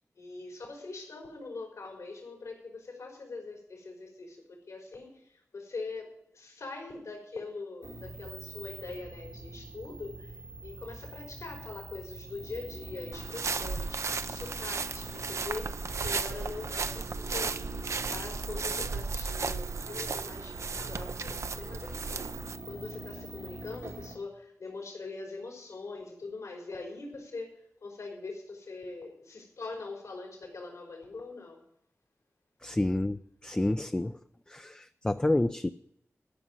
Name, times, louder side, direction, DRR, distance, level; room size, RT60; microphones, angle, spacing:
voice 1, 0.2-10.4 10.6-17.6 18.1-31.6, left 3 dB, 80° left, 1 dB, 4.0 m, -42 dB
sound 1, 7.8-24.2, right 3 dB, 85° right, 2.5 m, -44 dB
sound 2, 13.1-22.6, right 4 dB, 65° right, 0.6 m, -35 dB
voice 2, 32.6-34.2 34.5-35.7, left 1 dB, 15° left, 8 dB, 0.4 m, -29 dB
13.0 x 6.0 x 9.5 m, 0.74 s
wide cardioid pair, 75°, 5 cm